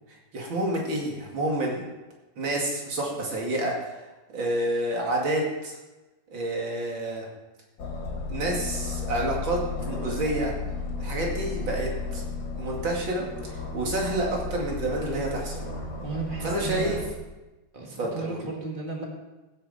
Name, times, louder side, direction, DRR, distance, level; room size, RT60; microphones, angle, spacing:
voice 1, 0.3-1.8 2.4-4.0 4.3-5.8 6.3-7.3 8.3-10.5 11.0-12.2 12.6-15.6 16.4-17.0 18.0-18.4, right 1 dB, 85° right, -2 dB, 3.1 m, -29 dB
Aircraft, 7.8-17.1, left 3 dB, 50° left, 1.6 m, -34 dB
voice 2, 16.0-17.0 17.7-19.1, right 3 dB, 25° right, 0 dB, 2.0 m, -34 dB
15.0 x 8.6 x 4.2 m, 1.1 s
omnidirectional pair, 2.1 m